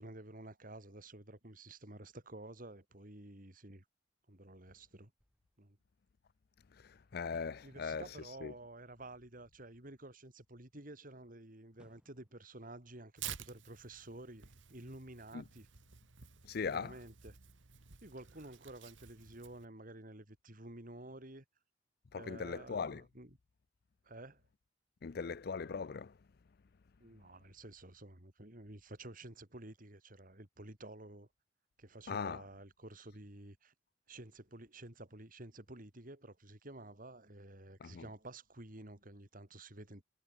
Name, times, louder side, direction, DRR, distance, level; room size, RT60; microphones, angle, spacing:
voice 1, 0.0-3.8 4.3-5.1 5.6-5.8 7.6-15.7 16.7-17.4 18.0-21.5 22.1-23.3 24.0-24.4 27.0-31.3 31.8-33.7 34.1-40.0, right 1 dB, 45° right, 3.4 m, -51 dB
sound 1, 5.2-13.4 13.8-14.6, equal, 5° right, 7.5 m, -72 dB
voice 2, 6.7-8.5 15.3-15.4 16.4-17.0 22.1-23.0 25.0-26.2 32.1-32.4 37.8-38.1, left 5 dB, 55° left, 0.5 m, -40 dB
Tearing, 13.2-19.7, right 9 dB, 85° right, 1.7 m, -51 dB
head